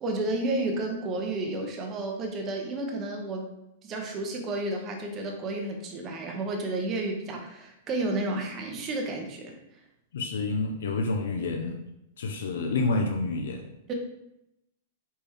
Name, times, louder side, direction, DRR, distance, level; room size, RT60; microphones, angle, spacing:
voice 1, 0.0-3.5 3.8-9.6 13.9-14.0, right 2 dB, 20° right, 1 dB, 0.7 m, -31 dB
voice 2, 10.1-11.8 12.2-13.7, left 3 dB, 85° left, 4 dB, 0.5 m, -28 dB
4.2 x 3.4 x 3.5 m, 0.86 s
supercardioid pair, 165°, 0 cm